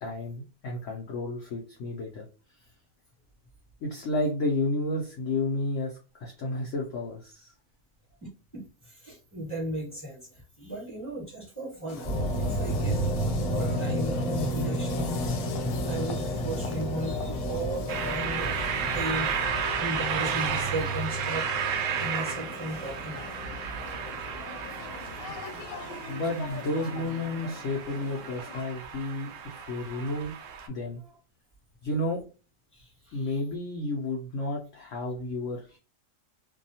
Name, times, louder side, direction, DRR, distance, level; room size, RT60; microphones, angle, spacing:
voice 1, 0.0-2.3 3.8-7.5 26.1-30.3 30.7-31.0 31.8-32.2 33.1-35.8, left 2 dB, 65° left, -1 dB, 0.8 m, -31 dB
voice 2, 8.2-13.0 13.5-19.5 19.8-21.4 22.0-23.2 30.9-31.2 32.7-33.4, right 1 dB, 10° left, -4 dB, 1.2 m, -36 dB
sound 1, 11.9-28.6, left 5 dB, 90° left, 1.2 m, -43 dB
sound 2, 12.0-26.4, equal, 30° left, 1.0 m, -32 dB
sound 3, 17.9-30.7, right 7 dB, 75° right, 0.7 m, -33 dB
2.7 x 2.3 x 2.7 m, 0.33 s
omnidirectional pair, 1.8 m